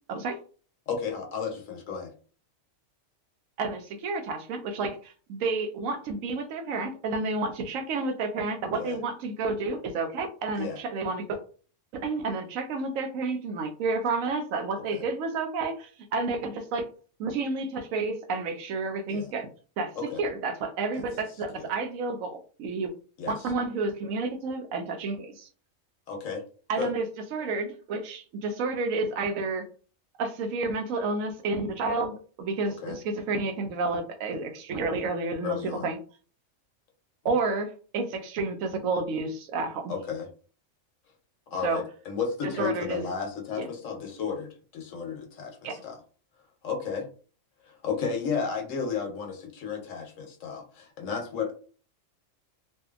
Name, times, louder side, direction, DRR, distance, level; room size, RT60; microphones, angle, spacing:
voice 1, 0.9-2.1 8.7-9.0 10.6-10.8 14.9-15.0 19.1-19.3 20.0-20.2 20.9-21.0 23.2-23.3 26.1-26.4 26.8-26.9 32.8-33.0 35.4-35.9 39.9-40.3 41.5-45.9 46.6-47.1 47.7-51.5, left 6 dB, 70° left, 2 dB, 1.1 m, -33 dB
voice 2, 3.6-11.4 12.0-16.8 17.2-19.5 19.8-22.9 23.3-25.5 26.7-27.0 27.3-29.6 30.2-36.0 37.2-39.9 41.6-41.8 42.6-43.0 43.6-43.7 45.6-45.8, right 3 dB, 80° right, 6 dB, 1.0 m, -30 dB
2.7 x 2.5 x 2.4 m, 0.39 s
omnidirectional pair, 1.4 m